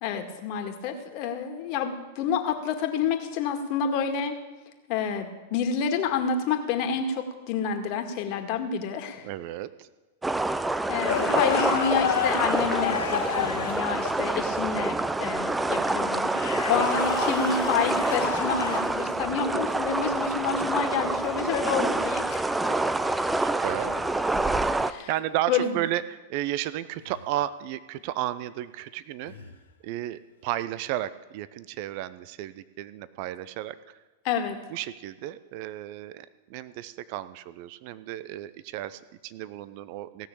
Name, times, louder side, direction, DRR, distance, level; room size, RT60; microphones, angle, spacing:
voice 1, 0.0-4.4 4.9-9.3 10.9-22.7 24.8-25.1 25.5-25.8 34.2-34.6, left 6 dB, 50° left, 5 dB, 2.0 m, -29 dB
voice 2, 9.2-9.9 16.5-16.8 23.4-24.0 25.1-29.3 29.8-34.0 34.7-40.3, right 13 dB, 50° right, 15 dB, 0.6 m, -33 dB
sound 1, 10.2-24.9, right 2 dB, 10° right, 0.6 m, -27 dB
sound 2, 11.1-14.2 16.2-18.9 21.3-21.5 23.8-24.1 27.0-27.2 29.3-29.6, left 8 dB, 75° left, 1.4 m, -30 dB
16.5 x 6.4 x 8.6 m, 1.2 s
hypercardioid pair, 100°, 0 cm